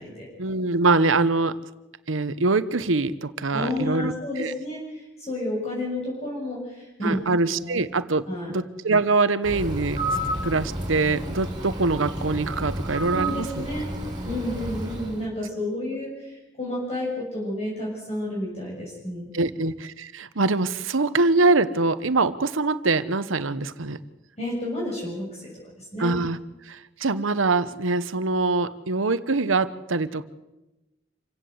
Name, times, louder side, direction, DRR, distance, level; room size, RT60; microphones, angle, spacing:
voice 1, 0.4-1.6 2.1-4.5 7.0-8.2 8.5-10.0 10.4-13.7 19.3-24.0 26.0-26.4 26.7-30.2, right 3 dB, 90° right, 13 dB, 1.1 m, -24 dB
voice 2, 3.5-7.2 7.6-7.8 8.3-8.5 13.1-13.9 14.2-19.3 24.4-25.5 25.8-26.2, left 1 dB, 35° left, -4 dB, 7.0 m, -31 dB
Bird, 9.4-15.3, right 1 dB, 25° right, 4.8 m, -31 dB
27.0 x 16.5 x 8.0 m, 1.0 s
head